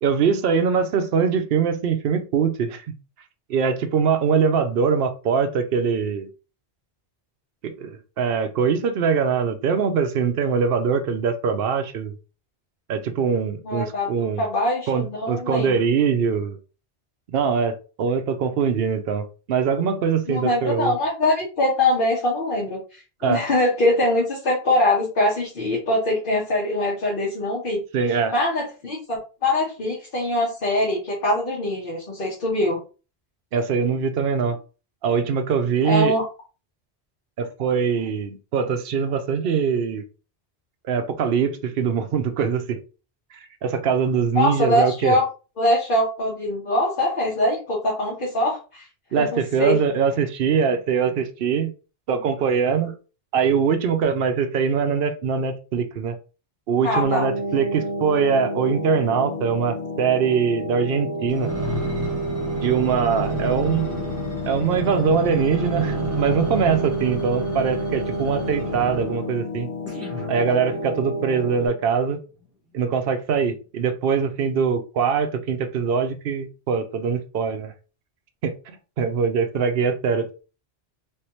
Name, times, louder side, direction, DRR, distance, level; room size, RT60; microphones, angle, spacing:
voice 1, 0.0-2.9 3.5-6.3 7.6-12.1 12.9-14.4 14.9-16.6 17.3-20.9 23.2-23.4 27.9-28.3 33.5-34.6 35.0-36.2 37.4-40.0 40.9-42.8 43.6-45.2 49.1-51.7 52.1-52.9 53.3-56.2 56.7-61.5 62.6-63.9 64.5-69.7 70.3-72.2 72.7-77.7 78.4-80.4, right 6 dB, 65° right, 0.8 m, -22 dB
voice 2, 13.6-15.8 20.3-27.8 28.1-32.8 35.8-36.2 44.3-45.2 45.6-48.9 49.2-49.8 56.8-57.3, left 1 dB, 55° left, 1.2 m, -23 dB
sound 1, 57.0-71.7, equal, 85° left, 1.0 m, -30 dB
sound 2, 61.3-69.3 69.9-71.1 71.7-71.8, right 1 dB, 15° right, 1.1 m, -31 dB
3.4 x 3.0 x 2.9 m
omnidirectional pair, 1.1 m